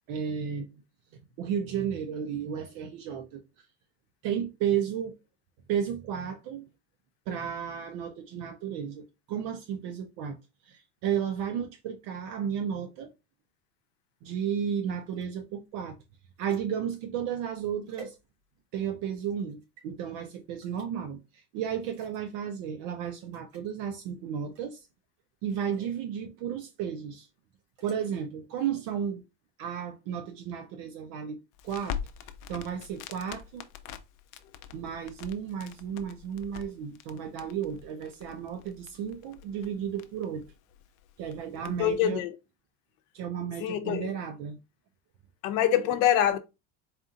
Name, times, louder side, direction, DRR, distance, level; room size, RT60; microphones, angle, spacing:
voice 1, 0.1-0.7 1.4-3.4 4.2-5.2 5.7-6.7 7.3-10.4 10.6-13.1 14.2-16.0 16.4-18.2 18.7-24.9 25.4-27.3 27.8-29.2 29.6-31.4 31.6-32.0 32.5-33.7 34.7-40.5 41.2-42.2 43.1-44.6, right 8 dB, 50° right, 0.6 m, -33 dB
sound 1, 15.0-18.8 19.2-19.9 20.6-20.9 21.8-22.4 22.8-22.9 23.2-23.7 24.5-24.9 25.4-26.0 27.5-28.0, right 4 dB, 70° right, 2.3 m, -54 dB
Crackle, 31.5-42.1, left 9 dB, 50° left, 0.5 m, -44 dB
voice 2, 41.8-42.4 43.6-44.1 45.4-46.4, left 10 dB, 70° left, 0.8 m, -25 dB
4.3 x 2.5 x 3.7 m
cardioid pair, 165°, 41 cm